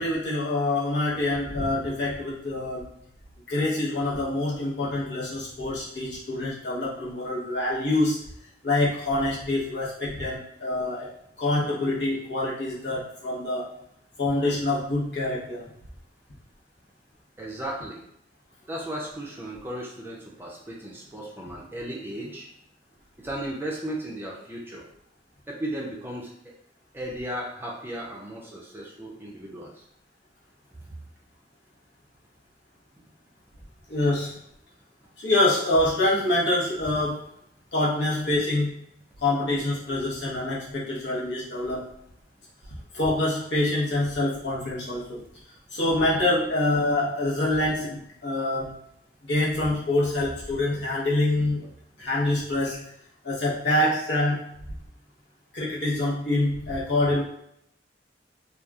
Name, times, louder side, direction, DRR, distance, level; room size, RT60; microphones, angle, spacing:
voice 1, 0.0-2.9 3.5-8.3 8.6-11.1 11.4-13.7 14.2-15.7 33.9-34.4 35.2-37.3 37.7-38.7 39.2-41.9 42.9-45.2 45.7-48.8 49.3-51.6 52.0-52.9 53.2-54.4 55.5-57.2, left 2 dB, 75° left, -7 dB, 0.9 m, -26 dB
voice 2, 17.4-18.0 18.7-22.5 23.2-24.9 25.5-26.3 26.9-29.7, right 1 dB, 10° right, -3 dB, 0.4 m, -35 dB
2.9 x 2.3 x 2.3 m, 0.74 s
head